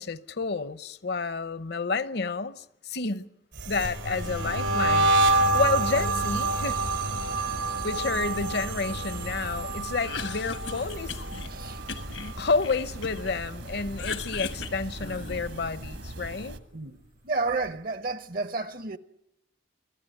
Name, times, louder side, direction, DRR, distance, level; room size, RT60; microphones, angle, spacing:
voice 1, 0.0-3.3 3.7-6.8 7.3-7.4 7.8-11.2 12.4-16.6, left 4 dB, 55° left, 0.8 m, -30 dB
sound 1, 3.5-12.7 13.0-13.4 13.8-15.3, right 3 dB, 85° right, 3.4 m, -28 dB
sound 2, 4.1-16.6, right 1 dB, 70° right, 1.7 m, -40 dB
Cough, 9.9-11.5 11.9-13.4 13.7-15.6, left 6 dB, 75° left, 1.3 m, -38 dB
voice 2, 11.5-11.8 16.7-19.0, right 3 dB, 45° right, 0.8 m, -31 dB
25.5 x 16.0 x 9.1 m
head